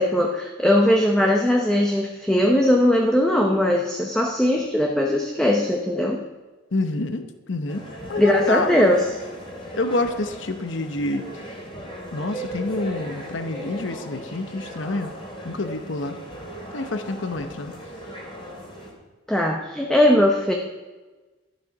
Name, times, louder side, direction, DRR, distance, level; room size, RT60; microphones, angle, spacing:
voice 1, 0.0-6.2 8.2-9.0 19.3-20.5, left 1 dB, 5° left, 1 dB, 0.9 m, -19 dB
voice 2, 6.7-7.8 8.1-8.9 9.7-11.3 12.1-15.1 15.4-16.2 16.7-17.7, left 2 dB, 65° left, 9 dB, 0.9 m, -27 dB
sound 1, 7.7-18.9, equal, 25° left, 2.7 m, -37 dB
12.0 x 11.5 x 4.8 m, 1.2 s
head